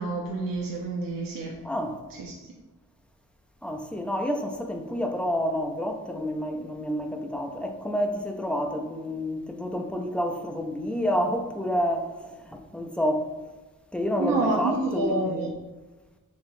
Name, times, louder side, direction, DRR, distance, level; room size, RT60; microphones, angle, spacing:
voice 1, 0.0-1.5 2.2-2.5 14.2-15.5, right 2 dB, 70° right, 0.6 m, -28 dB
voice 2, 1.6-2.0 3.6-13.3 13.9-15.5, equal, 5° left, 0.4 m, -29 dB
4.3 x 2.8 x 2.6 m
cardioid pair, 90°, 34 cm